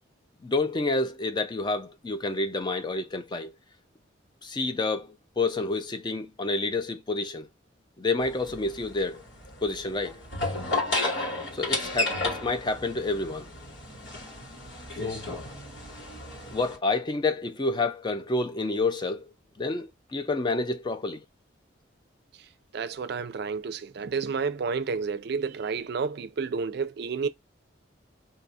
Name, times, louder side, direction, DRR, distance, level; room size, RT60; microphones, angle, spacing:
voice 1, 0.4-3.5 4.4-7.5 8.0-9.2 9.6-10.2 11.5-13.5 15.0-15.3 16.5-21.2, left 3 dB, 25° left, 0.4 m, -29 dB
sound 1, 8.2-16.8, left 2 dB, 90° left, 1.7 m, -33 dB
voice 2, 22.7-27.3, right 5 dB, 60° right, 0.4 m, -30 dB
2.8 x 2.3 x 4.0 m
head